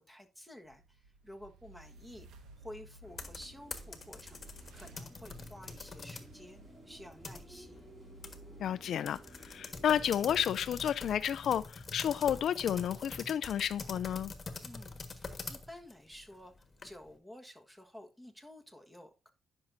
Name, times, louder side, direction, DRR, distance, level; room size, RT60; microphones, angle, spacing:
voice 1, 0.1-2.3 2.6-4.4 4.7-6.6 6.8-7.9 14.6-19.3, left 1 dB, 5° right, 1.4 m, -52 dB
sound 1, 0.6-9.8, right 2 dB, 75° right, 1.3 m, -57 dB
sound 2, 3.0-6.3 6.7-7.8 8.2-8.4 8.6-8.7 9.1-17.1, left 3 dB, 35° left, 1.4 m, -45 dB
sound 3, 3.0-10.5, right 1 dB, 20° right, 4.9 m, -56 dB
voice 2, 8.6-14.3, left 9 dB, 65° left, 0.4 m, -31 dB
10.5 x 6.2 x 2.6 m
cardioid pair, 90°, 0 cm